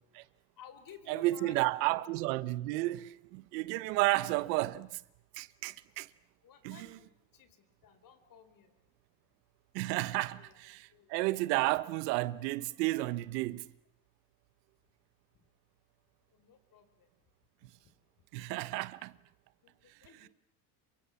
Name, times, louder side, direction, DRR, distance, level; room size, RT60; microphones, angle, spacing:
voice 1, 0.6-2.0 6.4-8.8 10.2-10.6 10.9-11.1 15.3-15.4 16.3-17.1 17.8-17.9 19.6-20.3, left 8 dB, 45° left, 4.2 m, -56 dB
voice 2, 1.1-5.0 5.3-6.1 6.6-6.8 9.7-13.7 18.3-19.2, right 19 dB, 85° right, 1.2 m, -32 dB
29.0 x 23.5 x 7.1 m
supercardioid pair, 125°, 48 cm